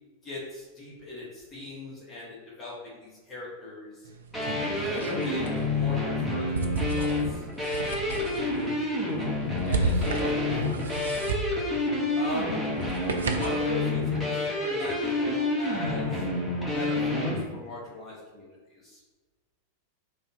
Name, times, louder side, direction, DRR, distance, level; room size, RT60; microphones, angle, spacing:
voice 1, 0.2-4.1 4.7-7.4 9.7-10.3 12.1-12.6 13.3-16.2 16.6-19.0, left 2 dB, 25° left, -6 dB, 1.4 m, -39 dB
sound 1, 4.0-13.7, right 3 dB, 65° right, 0.4 m, -34 dB
sound 2, 4.3-17.4, left 2 dB, 10° left, 1.3 m, -28 dB
voice 2, 9.4-11.2, equal, 75° left, -8 dB, 1.3 m, -40 dB
3.4 x 2.7 x 4.4 m, 1.3 s
figure-of-eight pair, 90°, 0 cm